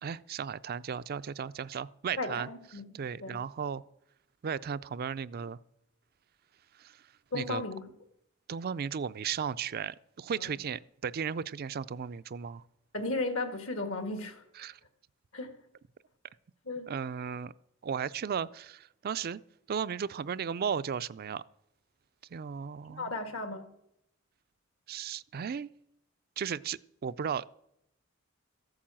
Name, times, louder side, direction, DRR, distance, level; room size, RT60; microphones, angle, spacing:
voice 1, 0.0-2.5 2.9-3.8 4.4-5.6 6.7-7.1 7.3-7.6 8.5-12.6 14.6-14.8 16.9-17.5 17.8-19.4 19.7-21.4 22.3-23.1 24.9-25.7 26.4-27.5, right 7 dB, 45° right, 0.4 m, -35 dB
voice 2, 2.2-3.4 7.3-7.9 10.4-10.6 12.9-14.4 15.3-15.6 16.7-16.9 23.0-23.7, left 2 dB, 70° left, 1.9 m, -35 dB
14.0 x 8.6 x 7.6 m
head